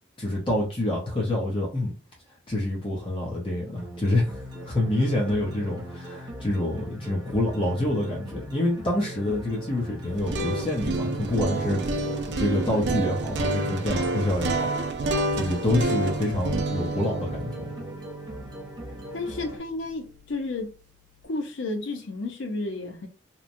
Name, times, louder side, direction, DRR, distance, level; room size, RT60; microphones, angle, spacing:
voice 1, 0.2-1.9 2.5-14.7 15.3-17.7, left 1 dB, 25° left, 0.7 m, -27 dB
sound 1, 3.8-19.6, equal, 20° right, 0.7 m, -40 dB
sound 2, 10.1-20.1, right 2 dB, 55° right, 0.4 m, -29 dB
voice 2, 19.1-20.7 21.2-23.1, left 2 dB, 70° left, 0.6 m, -32 dB
3.0 x 2.1 x 2.5 m
head